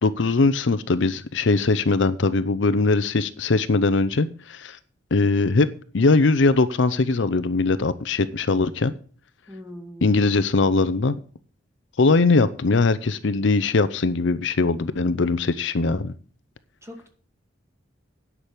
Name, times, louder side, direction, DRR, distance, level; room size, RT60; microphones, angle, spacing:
voice 1, 0.0-4.8 5.1-5.7 5.9-8.9 10.0-11.2 12.0-16.1, left 3 dB, 65° left, 14 dB, 0.6 m, -21 dB
voice 2, 9.5-10.1 16.8-17.1, equal, 15° right, 3 dB, 2.3 m, -40 dB
9.9 x 6.1 x 8.1 m, 0.44 s
head